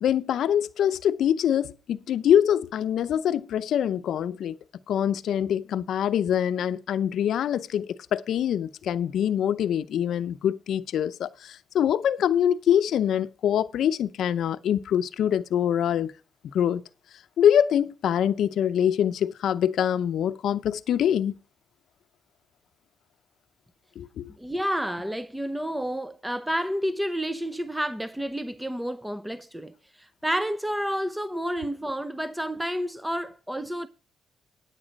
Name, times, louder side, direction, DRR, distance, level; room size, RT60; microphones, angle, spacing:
voice 1, 0.0-4.6 4.9-16.1 16.5-16.8 17.4-21.3 24.0-24.3, left 9 dB, 70° left, 0.7 m, -24 dB
voice 2, 24.4-33.9, equal, 5° right, 0.7 m, -30 dB
10.0 x 8.2 x 5.2 m
cardioid pair, 90°, 0 cm